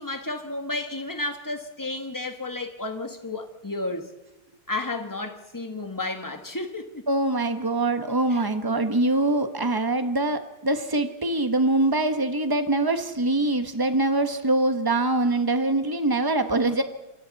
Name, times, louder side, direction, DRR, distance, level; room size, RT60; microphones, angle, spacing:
voice 1, 0.0-4.1 4.7-7.0 8.3-8.5, left 2 dB, 10° left, 1.3 m, -32 dB
voice 2, 7.1-16.8, right 2 dB, 15° right, 0.9 m, -23 dB
28.0 x 24.0 x 4.2 m
omnidirectional pair, 2.4 m